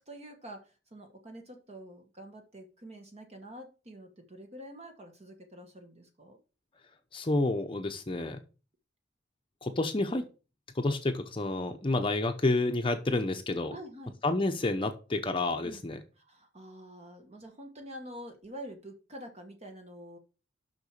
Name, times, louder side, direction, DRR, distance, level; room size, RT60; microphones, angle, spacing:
voice 1, 0.0-6.4 13.7-14.2 15.6-15.8 16.2-20.2, equal, 35° right, 4 dB, 1.4 m, -47 dB
voice 2, 7.1-8.4 9.6-10.2 10.7-13.7 14.2-16.0, left 2 dB, 30° left, 5 dB, 0.8 m, -29 dB
6.8 x 5.9 x 6.5 m, 0.34 s
head